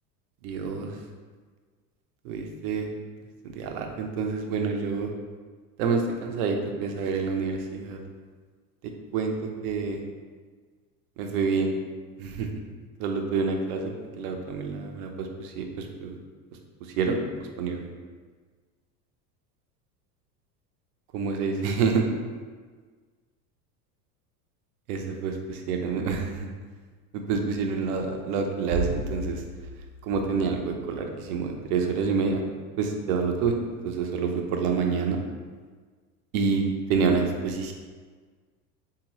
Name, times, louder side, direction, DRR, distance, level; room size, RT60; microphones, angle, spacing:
voice 1, 0.4-0.9 2.2-2.9 3.4-5.1 5.8-8.0 9.1-10.0 11.2-11.7 12.2-12.5 13.0-16.2 17.0-17.2 17.6-17.9 21.1-22.0 24.9-26.5 27.1-29.4 30.0-32.4 32.8-33.6 33.8-35.2 36.3-36.6 36.9-37.7, right 5 dB, 65° right, 3 dB, 0.7 m, -27 dB
3.6 x 2.8 x 3.0 m, 1.5 s
hypercardioid pair, 90°, 49 cm